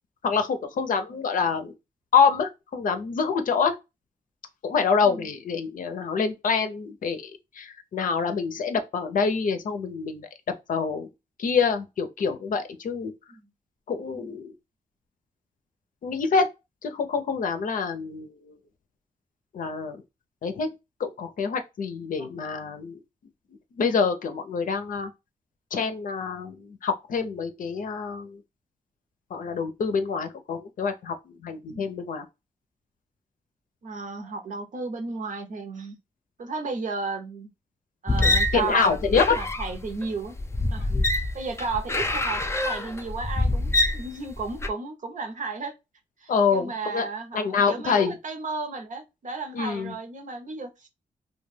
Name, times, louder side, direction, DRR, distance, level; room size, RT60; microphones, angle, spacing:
voice 1, 0.2-1.7 2.1-3.8 4.6-10.3 10.7-11.1 11.4-13.1 13.9-14.5 16.0-16.5 16.8-18.6 19.5-20.0 20.4-20.7 21.0-23.0 23.8-25.1 25.7-28.4 29.3-32.3 38.2-39.4 40.9-41.1 46.3-47.1 47.3-48.2 49.5-49.9, left 5 dB, 70° left, 0.5 m, -26 dB
voice 2, 33.8-36.0 36.4-37.5 38.0-40.3 40.7-40.9 41.3-45.7 46.2-50.9, right 3 dB, 65° right, 0.7 m, -34 dB
sound 1, 38.1-44.7, left 2 dB, 20° left, 0.4 m, -25 dB
2.3 x 2.2 x 3.2 m
cardioid pair, 65°, 14 cm